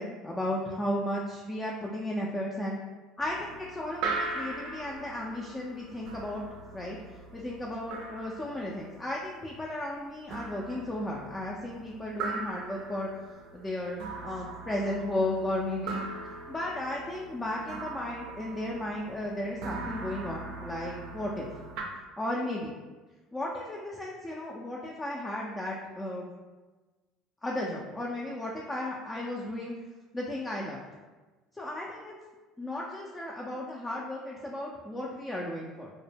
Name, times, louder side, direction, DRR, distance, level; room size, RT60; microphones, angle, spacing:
voice 1, 0.0-2.8 3.2-6.4 6.7-13.1 13.5-16.1 16.5-21.5 22.2-22.7 23.3-26.3 27.4-29.8 30.1-30.8 31.5-32.2 32.6-35.9, left 1 dB, 15° left, -3 dB, 0.4 m, -34 dB
sound 1, 3.2-21.8, right 3 dB, 65° right, 0.4 m, -40 dB
2.1 x 2.0 x 3.2 m, 1.3 s
hypercardioid pair, 70°, 0 cm